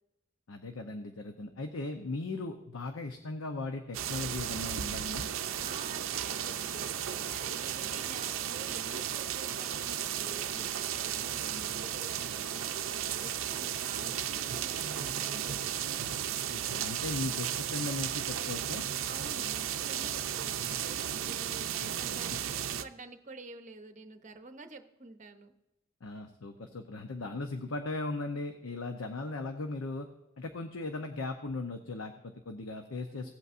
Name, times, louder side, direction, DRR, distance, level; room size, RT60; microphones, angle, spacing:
voice 1, 0.5-5.3 16.5-18.8 21.8-22.2 26.0-30.1 30.4-33.3, left 2 dB, 75° left, 5 dB, 0.8 m, -38 dB
sound 1, 3.9-22.8, right 10 dB, 70° right, 0.5 m, -34 dB
voice 2, 5.6-12.7 13.1-16.1 19.0-25.5 33.1-33.3, right 3 dB, 35° right, 7 dB, 0.7 m, -49 dB
17.0 x 8.2 x 2.6 m, 0.95 s
head